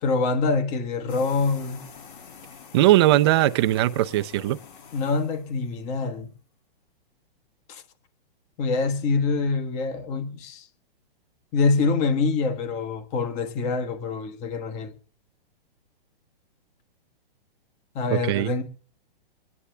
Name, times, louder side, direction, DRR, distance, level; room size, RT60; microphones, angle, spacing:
voice 1, 0.0-1.9 4.9-6.3 7.7-7.8 8.6-10.7 11.5-14.9 17.9-18.6, left 4 dB, 25° left, 1.3 m, -25 dB
sound 1, 1.1-5.9, left 6 dB, 60° left, 2.0 m, -47 dB
voice 2, 2.7-4.6 18.1-18.5, right 15 dB, 25° right, 0.5 m, -20 dB
25.0 x 9.9 x 3.4 m
hypercardioid pair, 160°, 29 cm